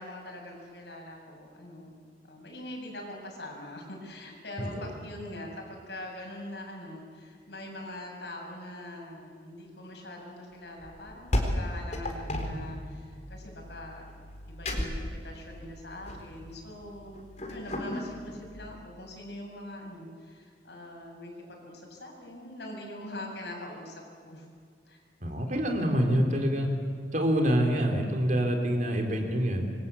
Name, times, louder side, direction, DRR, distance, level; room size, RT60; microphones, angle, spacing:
voice 1, 0.0-1.9 2.2-14.1 14.4-17.2 17.5-24.5 24.9-25.0, left 1 dB, 65° left, 0 dB, 7.5 m, -43 dB
voice 2, 4.6-4.9 25.2-26.7 27.1-29.7, equal, 45° right, 2 dB, 3.7 m, -26 dB
sound 1, 10.8-18.5, left 1 dB, 40° left, 4.2 m, -35 dB
27.0 x 24.0 x 8.5 m, 2.1 s
head